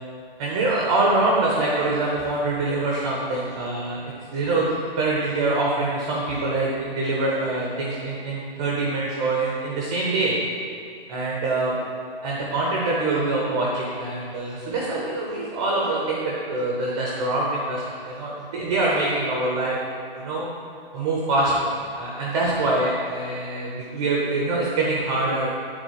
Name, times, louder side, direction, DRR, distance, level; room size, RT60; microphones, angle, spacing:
voice 1, 0.4-4.0 4.3-10.4 11.1-11.7 12.2-19.8 20.2-20.5 20.9-25.5, right 2 dB, 5° right, -4 dB, 0.4 m, -24 dB
9.4 x 3.7 x 6.7 m, 2.4 s
hypercardioid pair, 155°, 30 cm